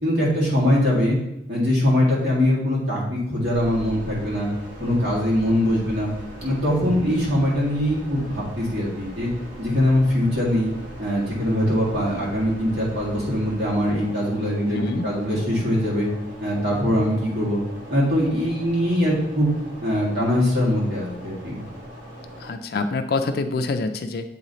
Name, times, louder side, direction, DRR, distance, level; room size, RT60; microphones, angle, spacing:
voice 1, 0.0-1.2 1.5-4.5 4.8-6.1 6.4-9.3 9.6-10.7 11.0-16.1 16.4-17.6 17.9-19.5 19.8-21.6, left 1 dB, 60° right, -6 dB, 1.8 m, -22 dB
sound 1, 3.5-22.5, equal, 90° right, 1.5 m, -40 dB
voice 2, 14.7-15.1 22.4-24.3, left 3 dB, 55° left, 8 dB, 0.4 m, -26 dB
7.8 x 3.1 x 3.9 m, 0.91 s
head